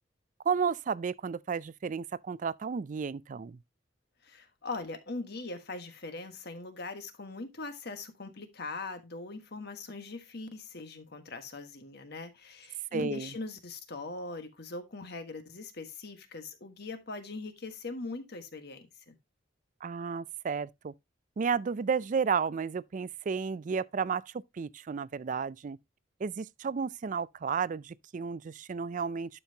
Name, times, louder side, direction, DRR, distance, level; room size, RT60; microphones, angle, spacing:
voice 1, 0.4-3.6 12.9-13.3 19.8-20.9 21.4-25.8 26.2-29.4, right 6 dB, 40° right, 0.3 m, -32 dB
voice 2, 4.2-19.2, left 3 dB, 55° left, 1.4 m, -41 dB
11.5 x 5.5 x 2.8 m
head